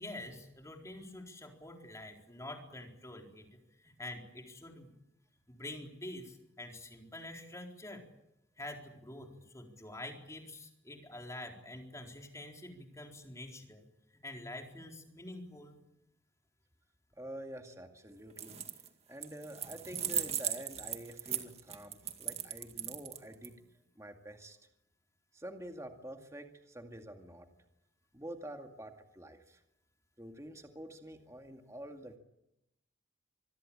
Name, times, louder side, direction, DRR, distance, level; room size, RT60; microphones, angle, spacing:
voice 1, 0.0-4.9 5.5-8.0 8.6-13.9 14.2-15.8 22.2-22.4 22.8-22.9, left 1 dB, 15° left, 2 dB, 4.2 m, -47 dB
voice 2, 17.2-18.6 19.1-23.6 24.0-24.6 25.3-27.5 28.1-29.6 30.2-32.2, right 1 dB, 15° right, 4 dB, 2.2 m, -47 dB
sound 1, 18.3-18.9 19.2-23.5, right 9 dB, 30° right, 2.1 m, -37 dB
26.0 x 21.0 x 8.8 m, 0.85 s
head